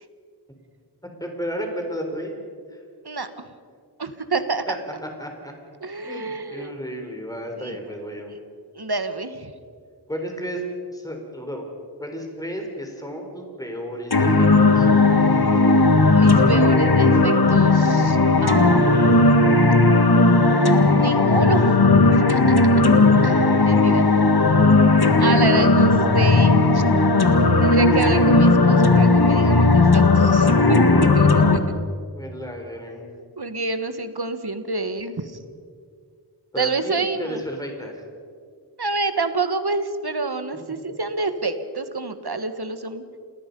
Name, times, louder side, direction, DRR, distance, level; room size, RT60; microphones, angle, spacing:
voice 1, 1.2-2.3 2.7-2.8 4.7-4.8 5.2-5.5 6.0-8.3 10.1-10.6 10.9-11.7 12.0-14.5 14.8-14.9 18.5-18.8 23.5-24.1 32.1-33.0 36.5-38.0, equal, 10° left, 2 dB, 4.0 m, -33 dB
voice 2, 4.0-4.6 5.8-6.7 7.6-7.8 8.8-9.5 16.1-19.2 21.0-22.7 23.2-24.1 24.8-26.8 27.6-30.8 31.1-31.6 33.4-35.3 36.6-37.4 38.8-43.0, right 3 dB, 65° right, 9 dB, 1.6 m, -27 dB
sound 1, 14.1-31.6, left 3 dB, 60° left, 1.7 m, -16 dB
29.0 x 19.5 x 5.4 m, 2.1 s
wide cardioid pair, 50°, 42 cm